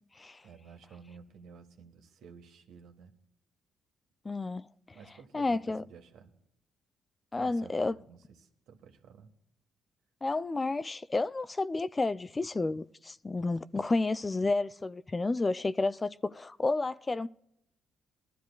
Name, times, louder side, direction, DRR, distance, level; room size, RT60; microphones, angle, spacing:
voice 1, 0.4-3.1 4.9-6.3 7.3-9.3, right 6 dB, 85° right, 1.6 m, -53 dB
voice 2, 4.2-4.7 5.3-5.8 7.3-8.0 10.2-17.3, left 3 dB, 25° left, 0.4 m, -31 dB
21.0 x 12.5 x 2.4 m
cardioid pair, 90°, 0 cm